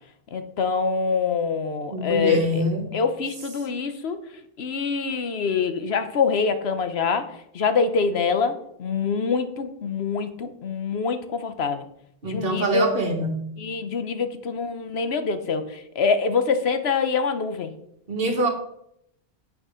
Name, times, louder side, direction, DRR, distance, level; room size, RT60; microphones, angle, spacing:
voice 1, 0.3-2.6 2.9-4.2 4.6-7.3 7.5-11.9 12.2-12.9 13.6-17.7, left 5 dB, 80° left, 9 dB, 1.2 m, -25 dB
voice 2, 1.9-2.9 12.2-13.5 18.1-18.5, right 1 dB, 65° right, 5 dB, 1.7 m, -24 dB
9.1 x 6.3 x 5.0 m, 0.74 s
omnidirectional pair, 1.0 m